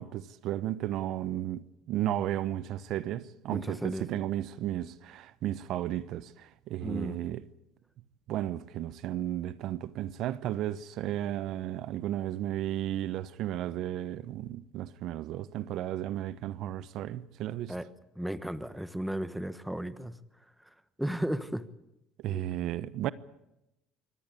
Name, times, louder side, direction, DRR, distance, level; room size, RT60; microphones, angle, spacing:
voice 1, 0.0-7.5 8.3-17.7 22.2-23.1, right 12 dB, 60° right, 0.9 m, -34 dB
voice 2, 3.5-4.0 6.8-7.2 17.7-17.9 18.2-20.2 21.0-21.7 22.3-22.4, right 1 dB, 5° right, 1.2 m, -34 dB
24.5 x 18.0 x 8.4 m
cardioid pair, 125°, 0 cm